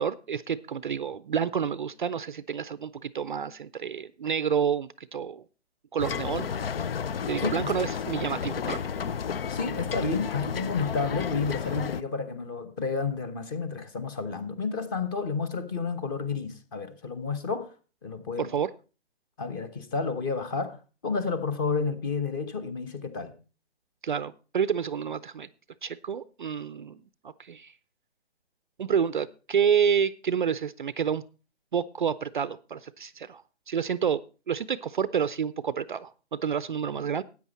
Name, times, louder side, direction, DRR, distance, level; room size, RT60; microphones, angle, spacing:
voice 1, 0.0-5.4 5.9-6.5 7.3-8.9 18.4-18.7 24.0-25.5 25.8-27.0 27.2-27.7 28.8-31.2 31.7-37.2, right 7 dB, 45° right, 0.5 m, -29 dB
sound 1, 6.0-12.0, left 7 dB, 55° left, 0.6 m, -32 dB
voice 2, 7.4-7.7 9.5-17.7 18.0-18.5 19.4-20.8 21.0-23.3, left 4 dB, 20° left, 1.0 m, -31 dB
13.5 x 9.1 x 4.1 m
hypercardioid pair, 150°, 34 cm